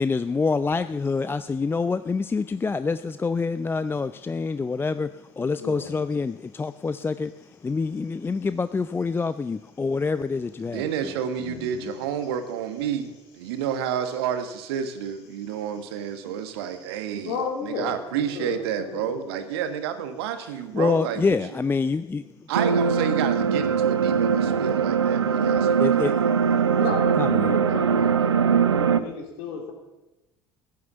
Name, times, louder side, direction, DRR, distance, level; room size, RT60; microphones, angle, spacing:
voice 1, 0.0-11.1 20.7-22.3 25.8-26.1 27.2-27.6, left 4 dB, 15° left, 13 dB, 0.4 m, -26 dB
voice 2, 5.6-6.0 11.4-11.9 16.4-16.5 17.2-19.3 26.8-28.4 28.7-29.7, left 5 dB, 65° left, 3 dB, 3.3 m, -33 dB
voice 3, 10.7-21.4 22.5-26.4, right 8 dB, 65° right, 9 dB, 1.5 m, -30 dB
sound 1, 22.5-29.0, right 7 dB, 80° right, 0.6 m, -21 dB
15.5 x 9.4 x 7.0 m, 1.0 s
figure-of-eight pair, 60°, 14 cm